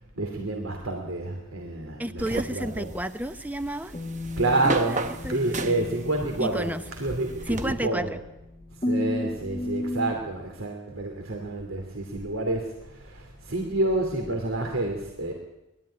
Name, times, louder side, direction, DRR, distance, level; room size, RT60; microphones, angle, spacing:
voice 1, 0.2-2.9 4.4-8.1 8.8-15.3, right 2 dB, 75° right, 2 dB, 2.8 m, -29 dB
voice 2, 2.0-3.9 4.9-5.8 6.4-6.8 7.5-8.1, right 1 dB, 10° right, 11 dB, 0.7 m, -31 dB
sound 1, 2.2-7.7, right 2 dB, 35° right, 1.0 m, -35 dB
sound 2, 3.9-10.1, left 1 dB, 25° left, 1.2 m, -34 dB
20.5 x 13.0 x 9.9 m, 0.91 s
head